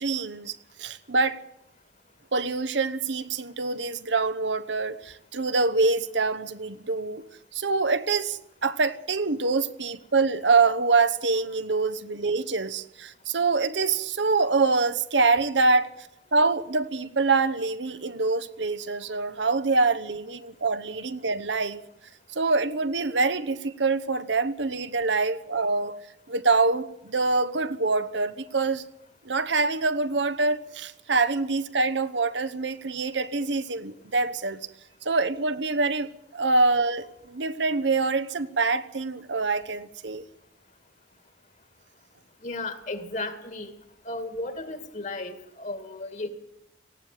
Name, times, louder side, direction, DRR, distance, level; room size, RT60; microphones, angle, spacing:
voice 1, 0.0-1.4 2.3-7.2 7.5-15.9 16.3-21.8 22.3-25.9 26.3-28.8 29.2-34.6 35.0-40.2, right 3 dB, 70° right, 1.1 m, -25 dB
voice 2, 42.4-43.7 44.0-46.3, left 2 dB, 40° left, 2.4 m, -34 dB
19.0 x 15.5 x 9.1 m
head